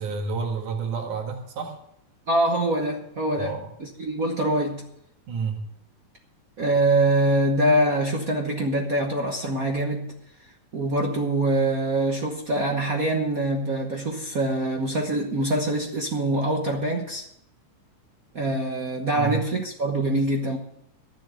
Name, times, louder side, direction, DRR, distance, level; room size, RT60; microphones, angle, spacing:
voice 1, 0.0-1.8 3.4-3.7 5.3-5.6 19.1-19.4, right 5 dB, 85° right, 2 dB, 3.3 m, -30 dB
voice 2, 2.3-4.9 6.6-10.2 10.7-17.2 18.3-20.6, right 1 dB, 70° right, 1 dB, 0.8 m, -24 dB
13.0 x 7.6 x 7.7 m, 0.76 s
omnidirectional pair, 3.4 m